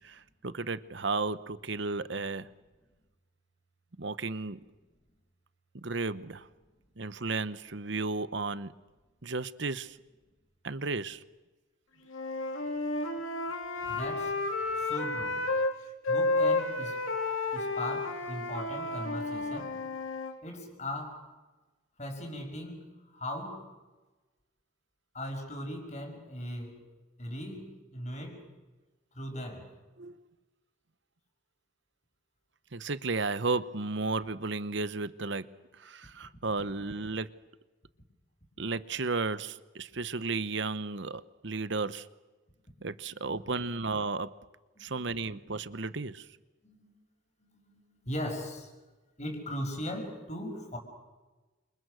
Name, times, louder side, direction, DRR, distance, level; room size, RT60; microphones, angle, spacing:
voice 1, 0.0-2.5 4.0-4.6 5.7-6.5 7.0-8.7 9.2-10.0 10.6-11.2 13.8-14.0 30.0-30.2 32.7-35.5 35.7-37.4 38.6-42.1 42.8-44.3 44.8-46.3, right 3 dB, 65° right, 1.0 m, -34 dB
Wind instrument woodwind instrument, 12.1-15.7 16.0-20.3, left 2 dB, 90° left, 3.2 m, -31 dB
voice 2, 13.9-14.3 14.8-15.5 16.1-17.0 17.5-19.8 20.4-21.2 22.0-23.7 25.1-26.9 27.2-28.5 29.1-29.7 42.7-43.7 44.8-45.4 46.6-46.9 47.4-48.7 49.2-50.8, left 1 dB, 35° left, 6.0 m, -39 dB
29.5 x 27.5 x 6.4 m
head